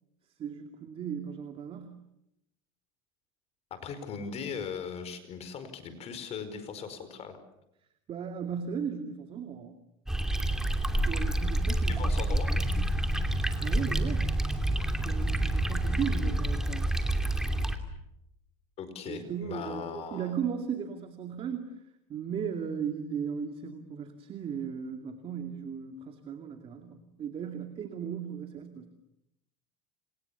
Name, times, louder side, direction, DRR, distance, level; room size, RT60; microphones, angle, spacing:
voice 1, 0.4-2.0 8.1-9.8 11.1-12.8 13.6-14.3 15.0-16.9 19.1-21.8 22.1-28.9, right 7 dB, 35° right, 5 dB, 2.5 m, -36 dB
voice 2, 3.7-7.4 11.9-12.5 18.8-20.3, left 6 dB, 40° left, 11 dB, 5.0 m, -39 dB
sound 1, 10.1-17.8, right 1 dB, 5° right, 2.8 m, -28 dB
29.0 x 29.0 x 7.1 m, 0.83 s
cardioid pair, 140°, 17 cm